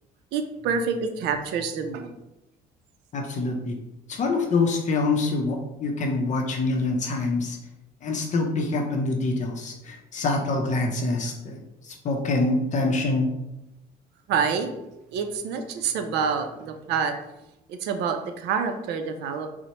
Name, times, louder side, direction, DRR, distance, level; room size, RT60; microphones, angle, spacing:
voice 1, 0.3-2.1 14.3-14.7 15.1-17.1 17.7-19.5, right 6 dB, 85° right, 7 dB, 0.4 m, -27 dB
voice 2, 3.1-3.8 4.1-7.6 8.0-11.6 11.8-13.3, left 3 dB, 45° left, 2 dB, 0.5 m, -25 dB
4.2 x 2.1 x 2.8 m, 0.92 s
cardioid pair, 110°, 17 cm